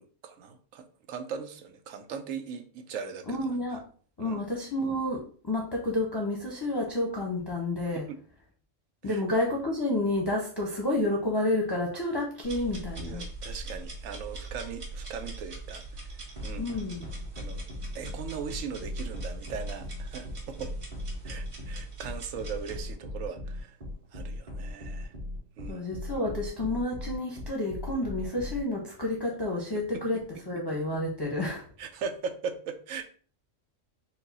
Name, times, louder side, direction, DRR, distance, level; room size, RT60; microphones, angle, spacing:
voice 1, 0.0-3.8 4.2-4.4 7.9-8.2 9.0-9.2 13.0-16.7 17.3-17.6 17.9-20.7 21.2-23.8 24.1-25.1 25.6-25.9 29.7-30.0 31.8-33.0, right 6 dB, 85° right, 7 dB, 1.0 m, -39 dB
voice 2, 3.3-3.8 4.2-8.1 9.0-13.2 16.6-17.0 25.7-31.7, left 1 dB, 25° left, -2 dB, 0.6 m, -30 dB
sound 1, 12.4-22.8, right 3 dB, 60° right, 1.4 m, -42 dB
sound 2, 16.4-28.6, left 1 dB, 30° right, 0.9 m, -38 dB
4.6 x 2.2 x 4.0 m, 0.42 s
omnidirectional pair, 1.3 m